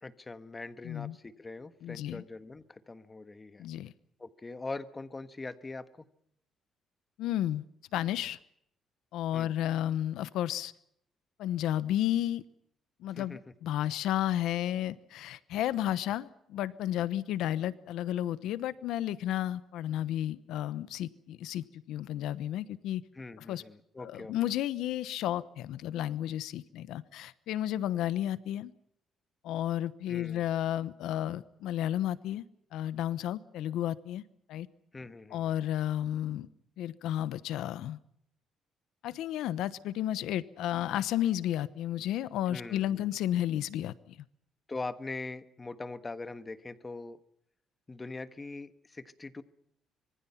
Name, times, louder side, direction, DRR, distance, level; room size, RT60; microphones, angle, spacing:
voice 1, 0.0-3.7 4.2-6.1 9.3-9.5 13.1-13.4 23.1-24.3 30.1-30.5 34.9-35.5 42.5-43.1 44.7-47.2 47.9-49.4, left 3 dB, 20° left, 11 dB, 1.5 m, -42 dB
voice 2, 0.8-1.2 1.8-2.2 3.6-3.9 7.2-7.6 7.9-8.4 9.1-10.7 11.4-12.4 13.0-23.0 23.4-23.6 24.0-28.7 29.4-32.4 32.7-34.2 34.5-34.7 35.3-36.5 36.8-38.0 39.0-44.2, left 12 dB, 85° left, 16 dB, 1.0 m, -32 dB
26.0 x 23.5 x 5.8 m, 0.73 s
cardioid pair, 130°, 0 cm